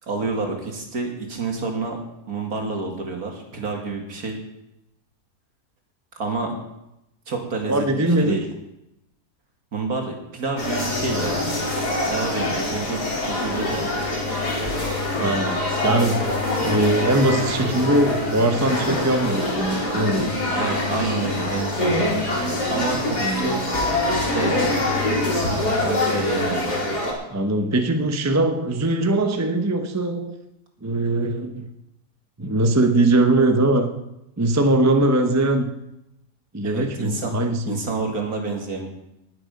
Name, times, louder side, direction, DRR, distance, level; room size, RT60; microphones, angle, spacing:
voice 1, 0.0-2.0 2.3-4.4 6.2-6.5 7.3-7.9 8.2-8.4 9.7-11.4 12.0-13.9 20.5-22.1 22.7-23.6 24.1-24.6 25.5-26.7 36.6-37.3 37.7-38.9, right 3 dB, 65° right, 2 dB, 2.7 m, -28 dB
voice 2, 7.7-8.4 15.2-16.2 16.6-20.3 23.2-23.8 27.3-30.4 30.8-31.7 32.4-33.9 34.4-35.7 36.5-37.8, right 2 dB, 15° right, 6 dB, 0.7 m, -21 dB
sound 1, 10.6-27.1, left 2 dB, 90° left, 4.1 m, -24 dB
19.0 x 7.7 x 5.3 m, 0.88 s
omnidirectional pair, 1.7 m